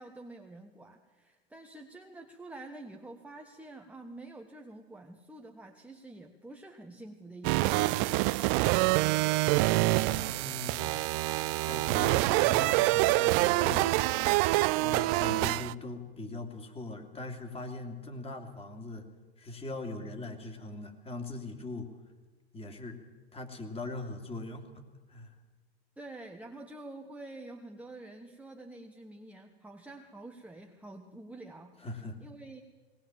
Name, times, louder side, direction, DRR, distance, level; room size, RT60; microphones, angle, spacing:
voice 1, 0.0-8.5 26.0-32.6, right 2 dB, 5° right, 3 dB, 1.3 m, -48 dB
sound 1, 7.4-15.7, right 20 dB, 45° right, 0.5 m, -26 dB
voice 2, 9.4-10.8 11.6-13.9 14.8-19.1 19.4-21.9 22.5-23.0 23.3-24.8 25.1-25.3 31.8-32.2, left 2 dB, 20° left, 4 dB, 2.9 m, -40 dB
19.5 x 19.5 x 7.4 m, 1.3 s
hypercardioid pair, 95°, 32 cm